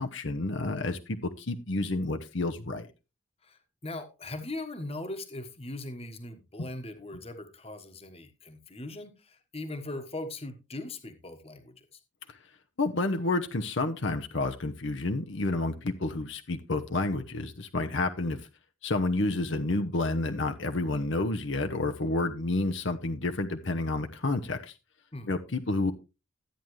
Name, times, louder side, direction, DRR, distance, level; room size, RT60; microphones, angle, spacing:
voice 1, 0.0-2.9 12.3-12.4 12.8-18.4 18.8-24.7 25.3-25.9, left 2 dB, 65° left, 6 dB, 0.9 m, -30 dB
voice 2, 3.4-12.0 25.1-25.3, left 2 dB, 30° left, 8 dB, 1.3 m, -40 dB
13.0 x 9.1 x 3.2 m, 0.29 s
head